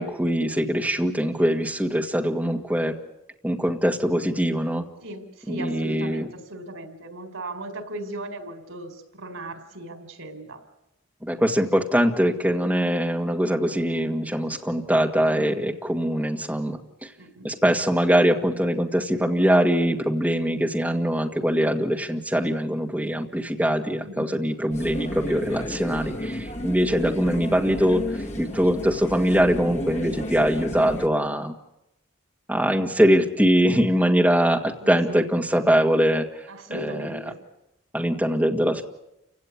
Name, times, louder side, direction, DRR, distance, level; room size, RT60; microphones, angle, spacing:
voice 1, 0.0-3.0 3.4-4.8 5.5-6.3 11.2-17.1 17.4-28.1 28.4-31.5 32.5-36.3 36.7-37.2 37.9-38.8, equal, 5° right, 1 dB, 1.8 m, -22 dB
voice 2, 5.0-10.6 15.2-15.6 17.2-17.5 24.0-24.4 34.8-35.3 36.5-37.4, right 1 dB, 85° right, 7 dB, 4.4 m, -38 dB
sound 1, 24.7-31.1, left 1 dB, 35° left, 1.6 m, -32 dB
29.0 x 17.0 x 9.7 m, 0.89 s
head